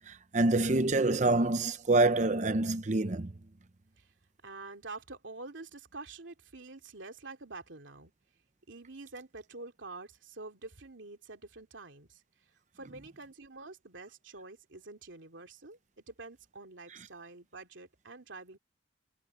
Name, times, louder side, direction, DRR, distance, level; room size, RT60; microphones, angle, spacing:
voice 1, 0.1-3.3, right 2 dB, 40° right, 0.8 m, -26 dB
voice 2, 4.4-8.1 8.7-12.2 12.7-15.8 16.1-18.6, right 3 dB, 85° right, 2.7 m, -47 dB
head